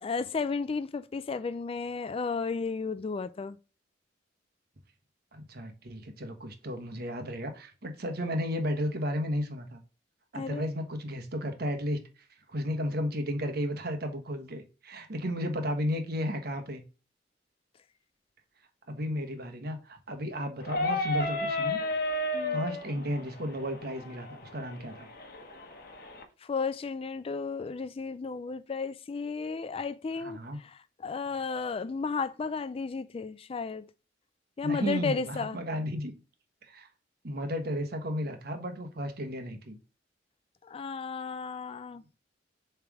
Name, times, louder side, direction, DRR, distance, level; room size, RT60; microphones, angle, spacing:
voice 1, 0.0-3.6 10.3-10.6 22.3-22.6 26.4-33.9 34.6-35.6 40.6-42.0, left 4 dB, 30° left, 0.3 m, -33 dB
voice 2, 5.3-9.8 10.3-12.0 12.5-16.8 18.9-21.8 22.5-25.1 30.2-30.6 34.6-36.1 36.6-36.9 37.2-39.8, equal, 55° right, 1.2 m, -33 dB
sound 1, 20.6-26.2, left 1 dB, 55° left, 1.0 m, -33 dB
7.2 x 3.4 x 4.8 m
head